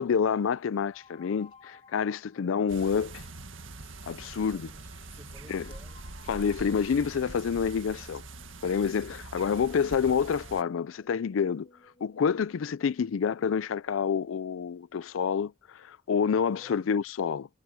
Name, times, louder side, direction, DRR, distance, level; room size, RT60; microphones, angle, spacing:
voice 1, 0.0-3.2 4.1-4.7 5.5-5.6 6.3-8.2 8.6-11.7 12.0-17.5, left 6 dB, 90° left, 0.4 m, -28 dB
sound 1, 0.9-13.7, left 4 dB, 35° left, 3.3 m, -60 dB
sound 2, 2.7-10.6, right 2 dB, 80° right, 1.9 m, -44 dB
voice 2, 4.3-6.2 16.3-17.0, right 1 dB, 15° right, 4.5 m, -54 dB
head